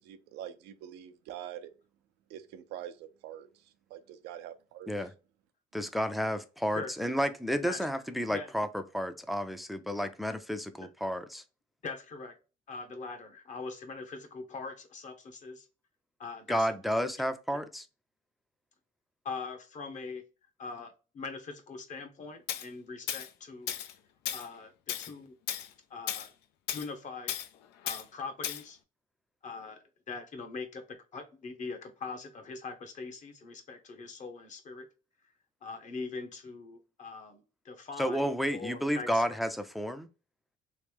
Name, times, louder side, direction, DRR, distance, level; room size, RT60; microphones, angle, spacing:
voice 1, 0.0-1.7 2.3-4.9, right 11 dB, 90° right, 0.5 m, -45 dB
voice 2, 5.7-11.4 16.5-17.9 38.0-40.1, equal, ahead, 0.4 m, -31 dB
voice 3, 11.8-12.3 12.7-15.7 16.2-16.7 19.2-20.2 20.6-23.7 24.3-25.3 25.9-26.3 26.7-27.3 27.8-28.8 29.4-34.9 35.6-39.4, left 4 dB, 45° left, 0.9 m, -42 dB
Tools, 22.5-22.6 23.1-23.3 23.7-23.9 24.2-24.5 24.9-25.1 25.5-25.7 26.1-26.3 26.7-26.9 27.3-27.5 27.9-28.0 28.4-28.6, left 11 dB, 85° left, 0.5 m, -35 dB
3.2 x 3.1 x 3.3 m
cardioid pair, 110°, 17 cm